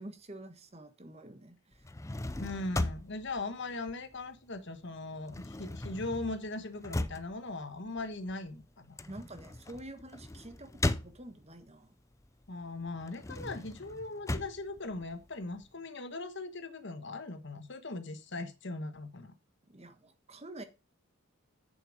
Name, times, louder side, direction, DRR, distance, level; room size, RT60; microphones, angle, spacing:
voice 1, 0.0-1.9 9.1-11.9 19.7-20.6, right 1 dB, 30° right, 1.4 m, -48 dB
sound 1, 1.7-4.6 4.9-11.7 12.1-15.7, left 2 dB, 15° left, 0.5 m, -38 dB
voice 2, 2.4-9.0 12.5-19.3, left 2 dB, 55° left, 1.3 m, -39 dB
8.5 x 7.1 x 5.0 m
head